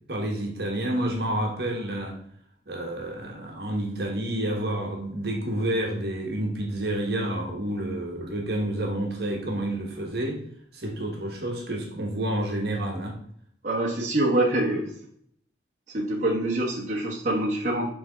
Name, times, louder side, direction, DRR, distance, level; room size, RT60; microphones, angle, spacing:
voice 1, 0.1-2.2 2.7-10.4 10.7-13.2, right 1 dB, 60° right, 1 dB, 1.3 m, -29 dB
voice 2, 13.6-14.8 15.9-17.9, right 1 dB, 40° right, -3 dB, 1.2 m, -25 dB
6.2 x 3.5 x 5.0 m, 0.65 s
head